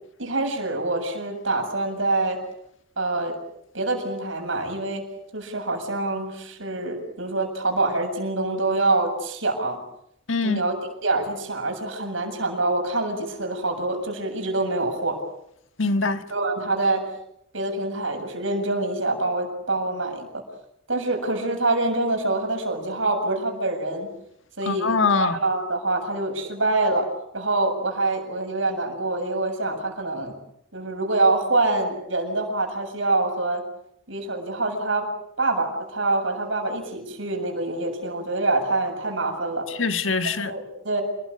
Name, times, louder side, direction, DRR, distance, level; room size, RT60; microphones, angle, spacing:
voice 1, 0.2-2.4 3.0-3.4 3.7-5.0 5.3-9.8 10.4-10.7 11.0-15.2 16.3-17.1 17.5-20.4 20.9-24.1 24.6-27.1 27.3-30.3 30.7-33.6 34.1-35.1 35.4-39.7 40.4-41.0, right 2 dB, 70° right, 7.6 m, -25 dB
voice 2, 10.3-10.6 15.8-16.2 24.6-25.4 39.7-40.5, left 4 dB, 70° left, 1.6 m, -23 dB
29.0 x 20.5 x 8.6 m
head